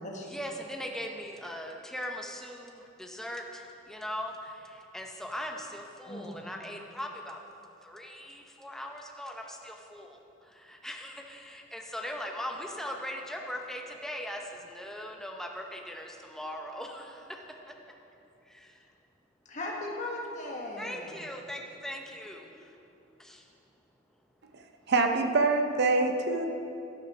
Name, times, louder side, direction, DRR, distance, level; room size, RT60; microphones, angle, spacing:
voice 1, 0.3-4.5 4.9-7.4 7.8-9.3 9.7-10.2 10.8-17.0 17.9-18.0 20.8-22.5 23.2-23.4, equal, ahead, 1 dB, 0.7 m, -39 dB
voice 2, 19.5-21.3, left 2 dB, 35° left, -1 dB, 1.5 m, -37 dB
voice 3, 24.9-26.5, right 3 dB, 55° right, 5 dB, 0.6 m, -25 dB
12.5 x 5.5 x 6.1 m, 2.8 s
head